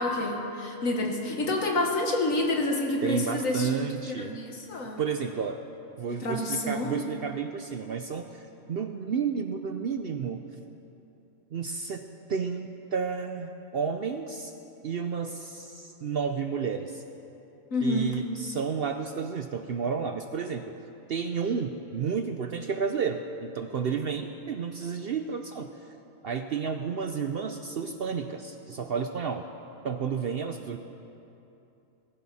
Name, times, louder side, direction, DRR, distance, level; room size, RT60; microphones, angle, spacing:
voice 1, 0.0-5.0 6.1-7.0 17.7-18.2, left 2 dB, 70° left, 1 dB, 2.0 m, -28 dB
voice 2, 3.0-4.4 5.0-5.6 6.0-10.5 11.5-14.5 14.8-17.0 17.8-20.7 21.1-25.9 26.2-29.5 29.8-30.8, right 6 dB, 55° right, 7 dB, 0.7 m, -31 dB
19.5 x 15.5 x 4.2 m, 2.8 s
omnidirectional pair, 1.4 m